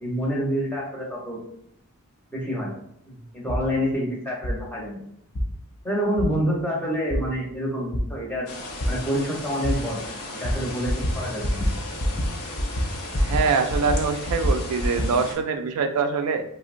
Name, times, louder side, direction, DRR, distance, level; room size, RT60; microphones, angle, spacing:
voice 1, 0.0-1.4 2.3-2.7 3.1-5.0 5.8-8.5 8.9-10.0 10.3-11.6, equal, 10° left, -5 dB, 0.8 m, -27 dB
sound 1, 3.5-3.6 4.4-4.6 5.4-5.5 6.2-6.3 7.1-7.2 7.9-8.0 8.8-8.9 9.6-9.7 10.4-10.6 10.9-11.2 11.4-11.7 12.0-12.3 12.6-13.5 13.7-15.1, equal, 35° left, 0.4 m, -24 dB
sound 2, 8.5-15.3, left 2 dB, 75° left, 0.7 m, -36 dB
voice 2, 13.2-16.4, right 5 dB, 75° right, 9 dB, 0.3 m, -24 dB
3.7 x 2.0 x 2.5 m, 0.71 s
head